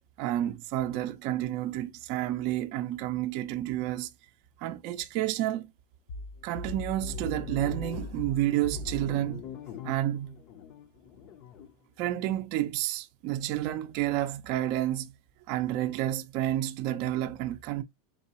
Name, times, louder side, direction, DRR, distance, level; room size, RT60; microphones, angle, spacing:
voice 1, 0.2-4.1 4.6-5.7 6.4-9.4 9.8-10.4 12.0-15.1 15.5-17.8, right 13 dB, 45° right, 0.5 m, -30 dB
sound 1, 6.1-11.7, left 3 dB, 40° left, 0.6 m, -40 dB
3.8 x 3.7 x 2.9 m
supercardioid pair, 160°, 0 cm